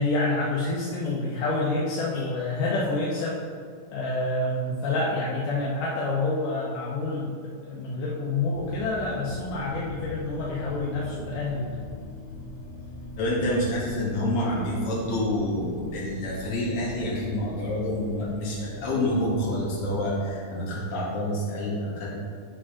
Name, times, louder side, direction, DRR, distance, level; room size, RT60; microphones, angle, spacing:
voice 1, 0.0-3.4 3.9-11.8, left 2 dB, 75° left, -5 dB, 2.0 m, -28 dB
sound 1, 8.5-20.2, left 2 dB, 90° left, 3.1 m, -41 dB
voice 2, 13.2-22.1, left 1 dB, 45° left, -6 dB, 2.7 m, -28 dB
8.8 x 6.9 x 3.7 m, 2.1 s
omnidirectional pair, 4.7 m